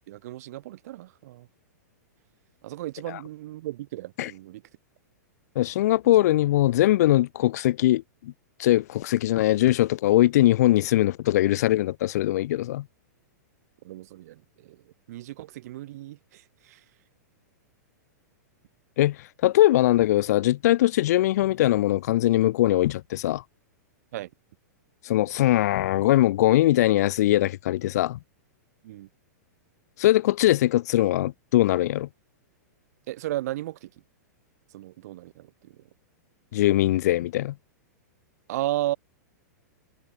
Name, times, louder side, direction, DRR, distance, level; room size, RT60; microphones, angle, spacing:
voice 1, 0.1-1.5 2.6-4.6 13.8-16.8 24.1-24.3 28.8-29.1 33.1-33.9 34.7-35.8 38.5-39.0, right 15 dB, 60° right, 1.3 m, -35 dB
voice 2, 5.6-8.3 8.6-12.8 19.0-23.4 25.0-28.2 30.0-32.1 36.5-37.6, left 14 dB, 65° left, 0.3 m, -21 dB
hypercardioid pair, 135°, 10 cm